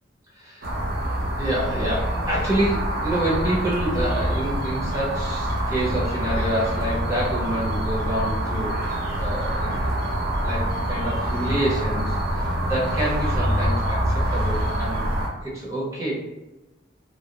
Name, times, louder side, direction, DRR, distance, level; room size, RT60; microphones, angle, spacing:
sound 1, 0.6-15.3, right 1 dB, 55° right, 0.6 m, -25 dB
voice 1, 1.4-9.9 10.4-16.1, right 1 dB, 15° right, -7 dB, 0.9 m, -27 dB
2.4 x 2.1 x 2.8 m, 1.1 s
head